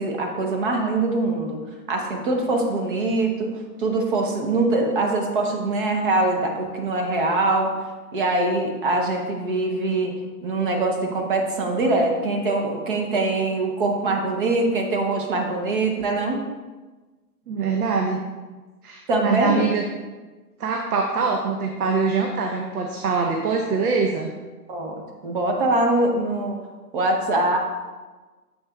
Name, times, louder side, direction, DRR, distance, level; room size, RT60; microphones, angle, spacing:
voice 1, 0.0-1.6 1.9-3.5 3.8-7.7 8.1-10.1 10.4-16.4 19.1-19.7 24.7-26.6 26.9-27.6, right 2 dB, 35° right, 2 dB, 0.9 m, -23 dB
voice 2, 17.5-18.2 18.8-19.8 20.6-24.3, right 4 dB, 65° right, 2 dB, 0.9 m, -23 dB
7.2 x 6.5 x 2.3 m, 1.3 s
hypercardioid pair, 165°, 48 cm